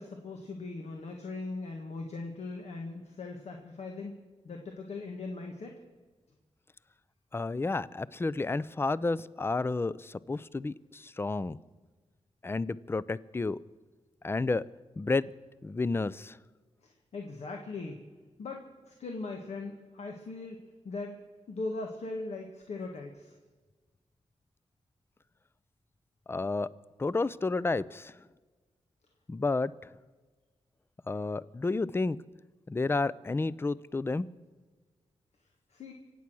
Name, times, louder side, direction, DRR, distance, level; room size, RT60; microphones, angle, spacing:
voice 1, 0.0-4.1 4.4-5.7 16.8-18.1 18.4-21.2 21.5-23.4 35.7-35.9, left 3 dB, 75° left, 2 dB, 1.6 m, -40 dB
voice 2, 7.3-11.6 12.4-13.6 14.2-14.7 15.0-15.3 15.6-16.4 26.3-26.7 27.0-28.1 29.3-29.7 31.1-32.2 32.7-34.3, left 3 dB, 20° left, 19 dB, 0.5 m, -31 dB
25.5 x 8.5 x 6.2 m, 1.3 s
cardioid pair, 80°, 11 cm